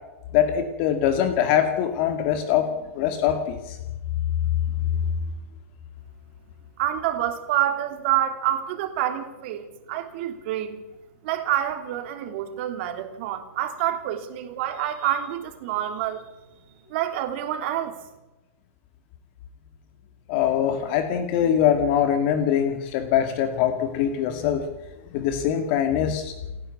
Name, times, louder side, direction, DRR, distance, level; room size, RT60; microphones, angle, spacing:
voice 1, 0.3-3.8 20.3-24.7 25.1-26.3, left 9 dB, 45° left, 2.2 m, -23 dB
voice 2, 6.8-10.8 11.2-16.2 16.9-18.0, right 11 dB, 50° right, 3.3 m, -27 dB
29.0 x 11.0 x 8.4 m
hypercardioid pair, 150°, 8 cm